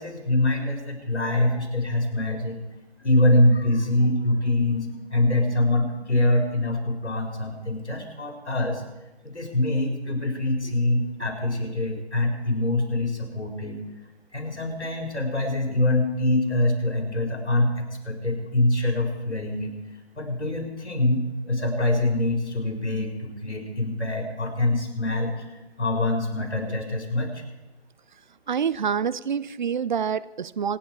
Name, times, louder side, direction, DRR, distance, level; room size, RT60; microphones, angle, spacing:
voice 1, 0.0-2.6 3.0-8.8 9.2-13.8 14.3-19.7 20.1-27.4, left 1 dB, 80° left, 2 dB, 5.0 m, -24 dB
voice 2, 28.5-30.8, right 7 dB, 45° right, 18 dB, 0.5 m, -26 dB
27.0 x 9.9 x 4.8 m, 1.0 s
figure-of-eight pair, 150°, 34 cm